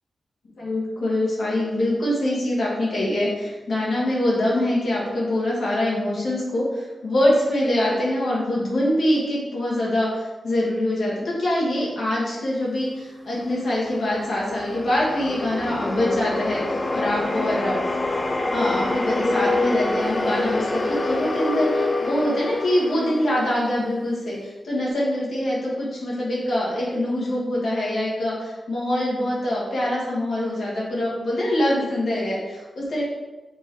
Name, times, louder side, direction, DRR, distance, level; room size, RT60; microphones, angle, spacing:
voice 1, 0.6-17.8 18.5-33.0, left 1 dB, 70° left, -6 dB, 1.4 m, -24 dB
sound 1, 13.7-24.1, left 2 dB, 25° left, 0.3 m, -26 dB
4.5 x 3.3 x 2.9 m, 1.2 s
wide cardioid pair, 115°, 0 cm